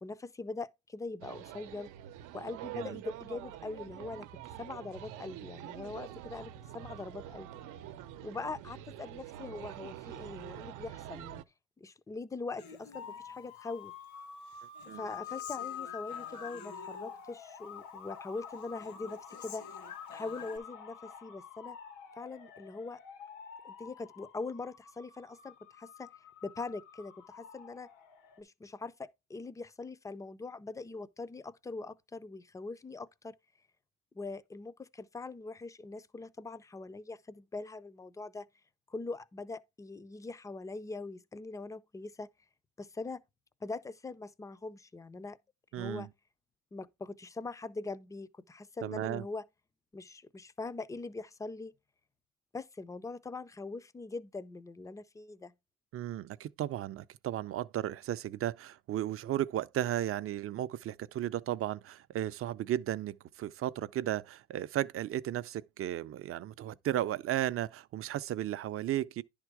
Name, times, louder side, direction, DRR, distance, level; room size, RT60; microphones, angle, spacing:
voice 1, 0.0-1.9 2.3-7.5 8.2-11.4 11.8-13.9 14.9-19.7 20.1-21.8 22.2-23.0 23.6-26.1 26.4-27.9 28.4-33.3 34.1-38.5 38.9-42.3 42.8-43.2 43.6-45.4 45.7-46.1 46.7-49.5 49.9-51.7 52.5-55.5, left 3 dB, 10° left, 0.4 m, -42 dB
sound 1, 1.2-11.4, right 12 dB, 85° right, 0.7 m, -46 dB
Human voice, 12.6-13.8 14.1-17.3 17.6-18.3 18.6-20.6, left 6 dB, 70° left, 1.3 m, -51 dB
sound 2, 12.9-28.4, left 8 dB, 90° left, 1.5 m, -47 dB
voice 2, 45.7-46.1 48.8-49.2 55.9-69.2, right 12 dB, 45° right, 0.5 m, -35 dB
10.5 x 3.6 x 4.7 m
cardioid pair, 140°, 30 cm